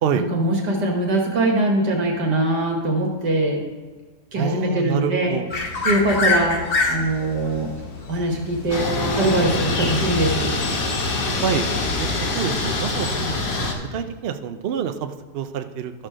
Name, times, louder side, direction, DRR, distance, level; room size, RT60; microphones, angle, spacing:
voice 1, 0.1-3.6 4.3-5.3 5.8-6.6 6.9-7.7 8.1-8.8 9.2-10.5 13.2-13.3, right 1 dB, 85° right, 0 dB, 2.4 m, -22 dB
voice 2, 4.3-5.5 11.4-11.7 12.0-12.1 12.3-13.4 13.9-15.9, right 8 dB, 70° right, 8 dB, 0.5 m, -26 dB
sound 1, 5.5-13.8, left 3 dB, 40° left, 1.0 m, -29 dB
sound 2, 8.7-13.7, left 2 dB, 75° left, 1.9 m, -24 dB
13.0 x 4.5 x 6.2 m, 1.3 s
omnidirectional pair, 1.8 m